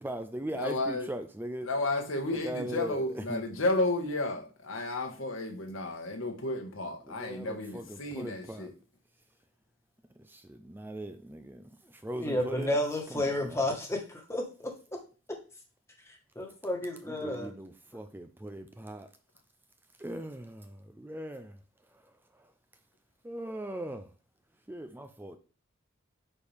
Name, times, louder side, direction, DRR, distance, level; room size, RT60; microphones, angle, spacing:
voice 1, 0.0-1.7 2.3-3.4 7.0-8.7 10.3-12.8 13.1-13.6 17.0-19.1 20.0-21.6 23.2-24.1 24.7-25.4, right 1 dB, 10° right, 0.5 m, -40 dB
voice 2, 0.5-1.1 1.6-8.7, left 2 dB, 85° left, 1.6 m, -32 dB
voice 3, 12.2-14.7 16.3-17.5, left 1 dB, 15° left, 1.5 m, -31 dB
9.6 x 4.5 x 3.5 m
head